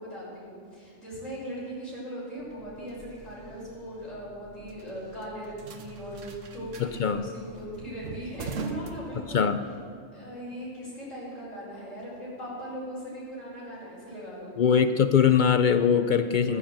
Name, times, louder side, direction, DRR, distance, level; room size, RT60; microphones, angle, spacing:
voice 1, 0.0-9.5 10.1-14.5, equal, 80° left, -9 dB, 5.4 m, -39 dB
sound 1, 2.4-9.7, right 4 dB, 75° right, 1.3 m, -42 dB
voice 2, 6.8-7.2 9.2-9.6 14.6-16.6, left 7 dB, 60° left, 10 dB, 0.5 m, -22 dB
13.0 x 9.8 x 7.5 m, 2.2 s
omnidirectional pair, 1.3 m